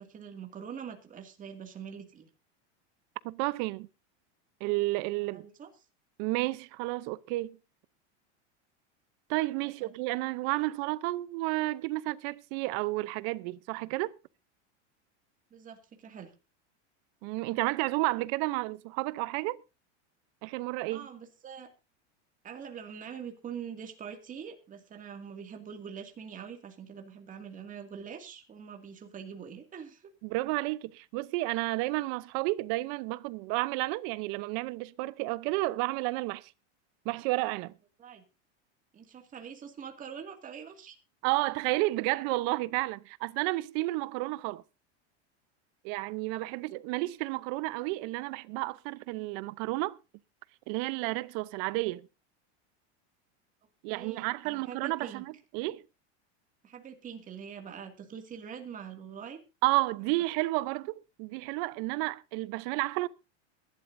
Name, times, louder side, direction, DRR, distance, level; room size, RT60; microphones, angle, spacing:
voice 1, 0.0-2.3 5.2-5.7 9.8-9.9 10.4-10.7 15.5-16.3 20.9-21.7 22.4-30.1 38.0-38.2 38.9-41.0 53.9-55.2 56.6-59.4 60.1-60.2, right 7 dB, 25° right, 2.2 m, -44 dB
voice 2, 3.2-3.9 4.6-5.4 6.2-7.6 9.3-14.1 17.2-19.6 20.4-21.1 30.2-36.5 37.0-37.7 41.2-44.6 45.8-50.0 50.7-52.1 53.8-55.2 55.5-55.8 59.6-63.1, right 21 dB, 50° right, 0.8 m, -31 dB
22.5 x 11.5 x 2.6 m
supercardioid pair, 145°, 34 cm